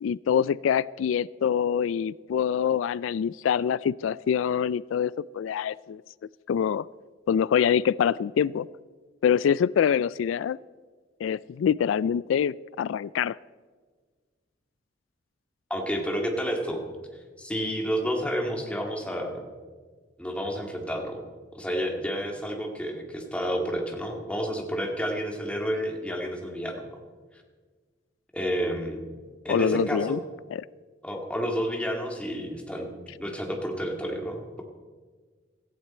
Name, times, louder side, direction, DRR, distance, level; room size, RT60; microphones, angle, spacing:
voice 1, 0.0-6.0 6.5-6.9 7.3-8.7 9.2-10.6 11.2-13.4 29.5-30.2 30.5-30.6, left 8 dB, 90° left, 21 dB, 0.3 m, -25 dB
voice 2, 15.7-16.9 17.4-19.5 20.2-21.2 21.5-27.0 28.3-29.0 29.4-30.2 31.0-32.9 33.2-34.6, equal, 5° left, 2 dB, 2.1 m, -30 dB
17.0 x 15.0 x 4.4 m, 1.5 s
head